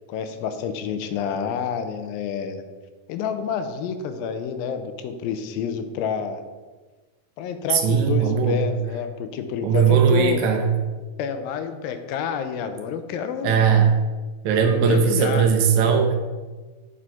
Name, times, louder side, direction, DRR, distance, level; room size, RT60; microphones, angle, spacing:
voice 1, 0.1-2.6 3.1-6.4 7.4-10.4 11.2-13.7 14.8-15.6, left 7 dB, 80° left, 9 dB, 2.4 m, -28 dB
voice 2, 7.7-8.6 9.6-10.7 13.4-14.0 14.4-16.1, right 6 dB, 80° right, 4 dB, 1.7 m, -19 dB
7.5 x 4.8 x 5.8 m, 1.3 s
omnidirectional pair, 4.3 m